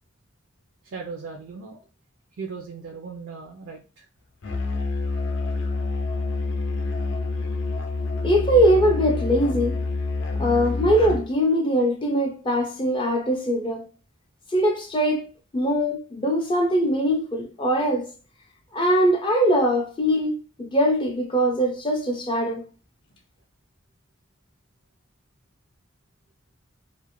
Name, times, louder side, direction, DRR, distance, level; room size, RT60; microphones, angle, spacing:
voice 1, 0.8-1.8 2.3-4.1, right 5 dB, 75° right, 0.4 m, -37 dB
Musical instrument, 4.4-11.3, left 3 dB, 70° left, 0.5 m, -27 dB
voice 2, 8.2-9.8 10.4-13.9 14.5-15.3 15.5-18.1 18.7-22.6, equal, 25° left, 0.4 m, -22 dB
2.4 x 2.0 x 3.0 m
head